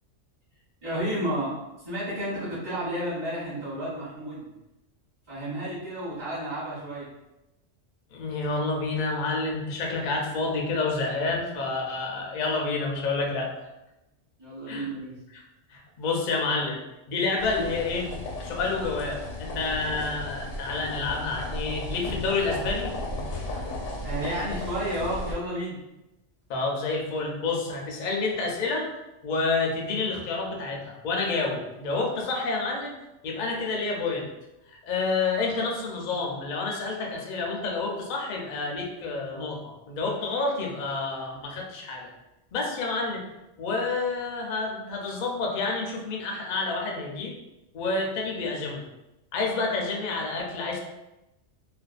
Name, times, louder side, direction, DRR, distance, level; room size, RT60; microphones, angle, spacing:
voice 1, 0.8-4.5 5.3-7.1 14.4-15.2 24.0-25.8, right 1 dB, 25° right, -11 dB, 0.6 m, -31 dB
voice 2, 8.1-13.5 14.7-14.9 15.3-15.4 15.7-16.8 17.1-18.1 18.4-22.9 26.5-28.9 29.2-32.9 33.2-34.3 34.7-42.1 42.5-43.2 43.6-47.3 47.7-48.8 49.3-50.8, left 3 dB, 60° left, 0 dB, 0.5 m, -29 dB
sound 1, 17.4-25.3, left 2 dB, 90° left, 0.9 m, -35 dB
2.5 x 2.2 x 2.3 m, 0.95 s
omnidirectional pair, 1.2 m